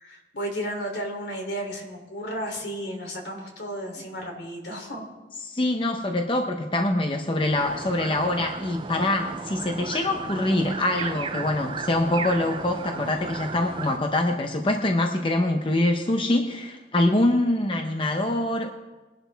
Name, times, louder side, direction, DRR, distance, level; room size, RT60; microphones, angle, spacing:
voice 1, 0.0-5.1, equal, 75° left, 1 dB, 3.1 m, -33 dB
voice 2, 5.5-18.7, left 1 dB, 30° left, 4 dB, 0.7 m, -24 dB
sound 1, 7.5-14.0, right 4 dB, 25° right, 0.5 m, -35 dB
21.5 x 11.5 x 3.4 m, 1.2 s
head